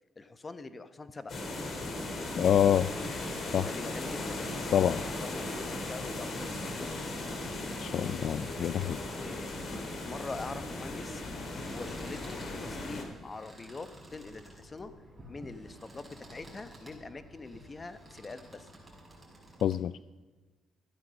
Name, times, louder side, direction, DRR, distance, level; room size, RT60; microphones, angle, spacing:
voice 1, 0.2-1.3 3.6-4.5 5.2-7.5 9.1-11.3 11.7-14.9 15.3-18.7, left 3 dB, 30° left, 11 dB, 1.1 m, -44 dB
sound 1, 1.3-13.0, left 2 dB, 50° left, 3.1 m, -37 dB
voice 2, 2.3-2.9 3.5-3.7 4.7-5.0 7.8-9.0 19.6-19.9, left 9 dB, 65° left, 16 dB, 0.3 m, -26 dB
sound 2, 3.4-19.8, right 1 dB, 15° right, 5.2 m, -53 dB
14.0 x 9.7 x 6.5 m, 1.2 s
cardioid pair, 90°, 0 cm